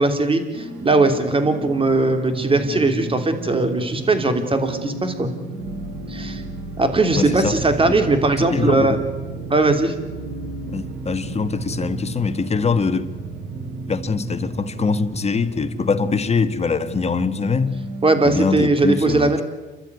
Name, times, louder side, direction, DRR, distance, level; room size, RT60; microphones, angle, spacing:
voice 1, 0.0-5.3 6.1-6.4 6.8-9.0 9.5-9.9 18.0-19.4, right 2 dB, 25° right, 3.2 m, -19 dB
sound 1, 0.5-18.4, right 2 dB, 70° right, 4.1 m, -33 dB
voice 2, 7.1-7.6 7.9-8.0 8.5-9.0 10.7-13.1 13.9-17.8 18.2-19.4, left 4 dB, 30° left, 1.5 m, -23 dB
29.5 x 13.0 x 9.6 m
cardioid pair, 90°, 20 cm